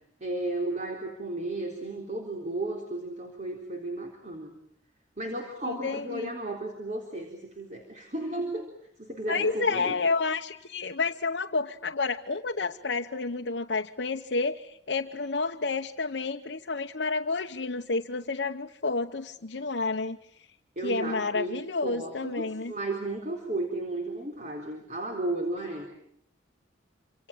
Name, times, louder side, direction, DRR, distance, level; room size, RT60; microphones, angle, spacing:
voice 1, 0.2-4.6 5.2-8.6 9.0-10.0 20.8-25.9, right 2 dB, 40° right, 2 dB, 4.0 m, -34 dB
voice 2, 5.6-6.3 9.3-20.2 20.8-22.7, left 3 dB, 65° left, 2 dB, 1.0 m, -30 dB
27.0 x 26.5 x 7.4 m, 0.72 s
head